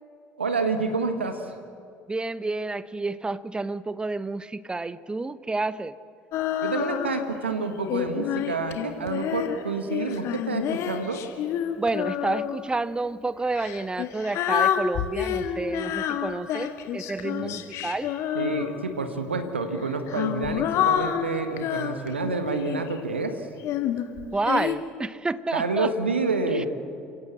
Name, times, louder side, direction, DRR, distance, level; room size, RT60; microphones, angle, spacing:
voice 1, 0.4-1.5 6.6-11.3 17.4-17.6 18.3-23.5 25.5-26.7, right 3 dB, 85° right, 8 dB, 1.7 m, -28 dB
voice 2, 2.1-5.9 11.8-18.1 24.3-25.9 26.6-26.7, right 3 dB, 15° right, 17 dB, 0.9 m, -29 dB
Female singing, 6.3-7.4 7.9-12.7 13.5-19.0 19.8-23.0 23.6-24.8, left 10 dB, 55° left, 1.8 m, -28 dB
29.5 x 17.0 x 7.4 m, 2.4 s
figure-of-eight pair, 60°, 6 cm